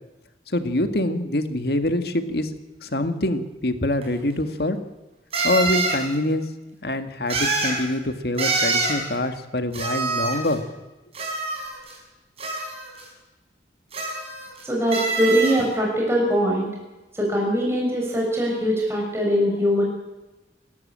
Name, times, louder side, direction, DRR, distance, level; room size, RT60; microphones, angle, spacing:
voice 1, 0.5-2.5 2.8-4.8 5.4-6.5 6.8-10.6, left 1 dB, 65° left, 8 dB, 1.9 m, -25 dB
sound 1, 4.0-4.1 5.3-6.0 7.3-7.8 8.4-9.0 9.7-10.5 11.1-12.0 12.4-13.0 13.9-14.6 14.9-15.6, right 3 dB, 35° right, 6.4 m, -25 dB
voice 2, 14.6-16.7 17.2-19.8, equal, 15° right, -2 dB, 6.5 m, -22 dB
27.5 x 13.5 x 8.9 m, 1.1 s
head